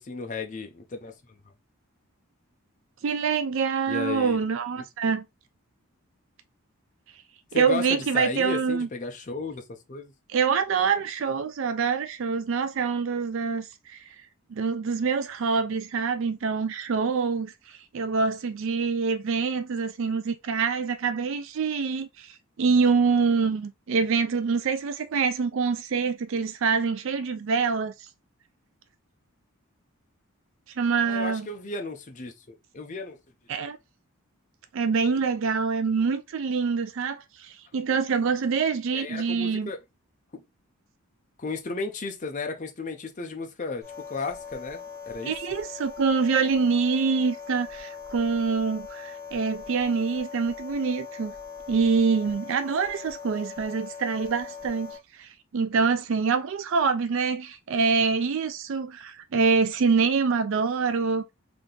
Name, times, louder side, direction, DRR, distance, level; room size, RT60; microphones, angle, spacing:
voice 1, 0.1-1.1 3.9-4.4 7.5-10.1 30.9-33.2 38.9-39.8 40.3-40.4 41.4-45.3, left 3 dB, 35° left, 0.6 m, -34 dB
voice 2, 3.0-5.3 7.5-8.9 10.3-14.2 14.5-28.1 30.8-31.5 33.5-33.8 34.7-39.7 45.3-51.3 51.7-61.3, right 5 dB, 55° right, 0.4 m, -25 dB
sound 1, 43.8-55.0, left 6 dB, 15° left, 1.4 m, -41 dB
3.5 x 2.8 x 3.7 m
head